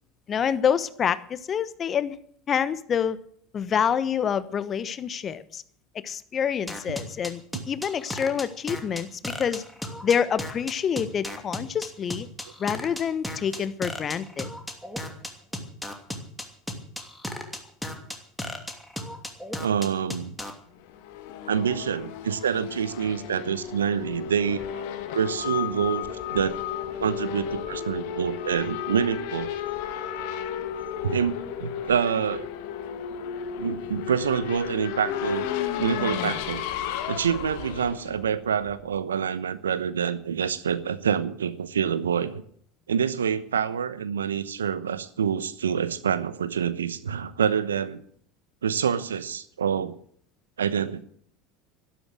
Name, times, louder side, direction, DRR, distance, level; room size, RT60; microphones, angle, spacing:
voice 1, 0.3-2.2 2.5-3.2 3.5-5.6 6.0-7.4 7.7-9.6 10.0-12.3 12.6-14.5, left 8 dB, 35° left, 15 dB, 1.1 m, -27 dB
sound 1, 6.7-20.5, left 1 dB, 5° left, 2.8 m, -34 dB
voice 2, 19.6-20.3 21.5-24.8 25.1-26.6 27.0-29.5 31.0-32.5 33.6-35.5 35.8-36.6 37.1-42.4 42.9-48.0 48.6-49.9 50.6-51.0, right 7 dB, 80° right, 15 dB, 0.9 m, -27 dB
Race car auto racing / Accelerating revving vroom, 20.8-38.9, left 9 dB, 60° left, 1.5 m, -34 dB
sound 2, 25.1-28.0 28.4-29.1 29.5-31.0, left 17 dB, 85° left, 2.2 m, -37 dB
12.0 x 12.0 x 7.7 m, 0.62 s
hypercardioid pair, 75°, 0 cm